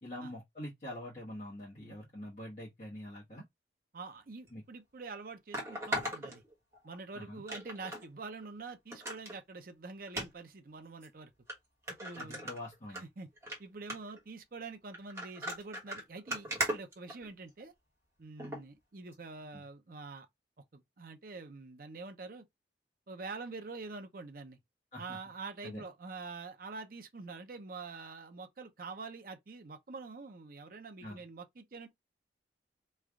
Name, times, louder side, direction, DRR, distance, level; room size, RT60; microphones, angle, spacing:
voice 1, 0.0-3.4 4.5-4.6 7.1-7.4 12.2-13.0 19.5-19.7 24.9-25.2 25.6-25.8 31.0-31.2, left 1 dB, 40° left, 1.2 m, -45 dB
voice 2, 3.9-6.4 6.8-11.3 11.9-12.5 13.0-13.3 13.6-17.7 18.2-20.3 20.7-22.4 23.1-24.6 25.0-31.9, right 4 dB, 50° right, 0.6 m, -46 dB
sound 1, 4.5-4.6 5.5-7.0 7.5-8.0 8.4-8.5 8.9-9.4 10.1-10.3 11.0-11.1 11.5-11.6 11.9-13.0 13.4-13.6 13.9-14.2 14.9-17.6 18.4-18.6 19.1-19.2, right 1 dB, 15° right, 1.2 m, -38 dB
3.2 x 2.4 x 3.5 m
head